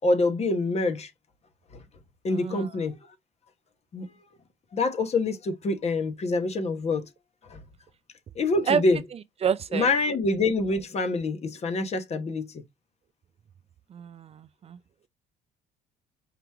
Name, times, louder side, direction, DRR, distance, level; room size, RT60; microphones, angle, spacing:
voice 1, 0.0-1.1 1.7-1.8 2.2-3.0 3.9-4.1 4.7-7.1 7.5-7.6 8.3-9.0 9.7-12.6, left 3 dB, 40° left, 1.1 m, -26 dB
voice 2, 2.3-2.7 8.7-8.8 9.4-9.9 13.9-14.8, right 7 dB, 35° right, 0.4 m, -28 dB
5.0 x 3.0 x 3.4 m
cardioid pair, 110°, 17 cm